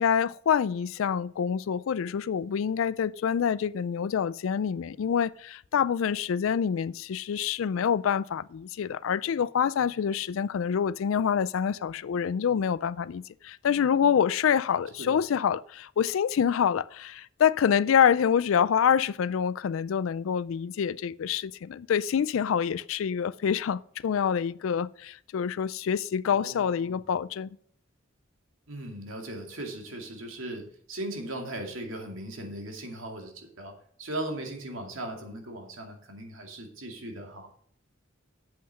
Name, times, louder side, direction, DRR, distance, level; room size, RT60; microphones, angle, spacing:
voice 1, 0.0-27.5, left 7 dB, 75° left, 0.4 m, -26 dB
voice 2, 14.7-15.2 26.3-27.0 28.7-33.7 34.0-37.5, right 1 dB, 70° right, 2.5 m, -38 dB
8.4 x 7.8 x 5.4 m
head